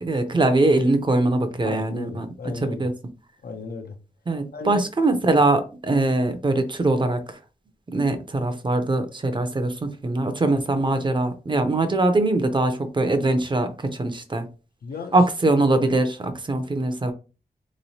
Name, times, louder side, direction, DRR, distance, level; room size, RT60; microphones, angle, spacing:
voice 1, 0.0-2.3 2.5-2.9 4.3-7.2 7.9-14.4 15.1-17.1, right 2 dB, 30° right, 0.5 m, -22 dB
voice 2, 1.6-2.8 3.4-3.9 4.5-4.8 14.8-15.2, left 4 dB, 90° left, 0.6 m, -35 dB
3.8 x 3.0 x 2.7 m
wide cardioid pair, 120°, 15 cm